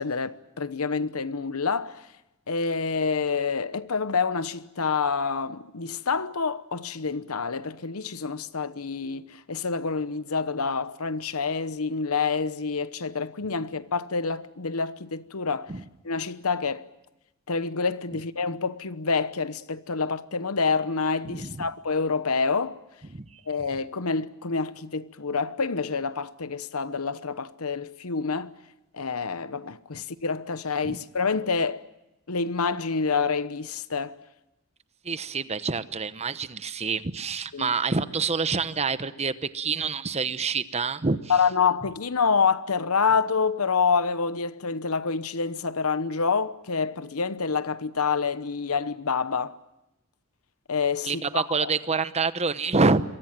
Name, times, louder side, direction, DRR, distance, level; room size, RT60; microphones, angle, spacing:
voice 1, 0.0-2.0 2.5-15.7 16.0-16.9 17.5-22.8 23.5-28.5 28.9-31.8 32.3-34.1 37.5-37.7 41.3-49.6 50.7-51.7, left 5 dB, 80° left, 1.0 m, -27 dB
voice 2, 21.2-21.7 23.1-23.2 30.8-31.0 35.0-41.2 51.0-53.0, right 4 dB, 30° right, 0.9 m, -27 dB
26.5 x 23.0 x 7.6 m
head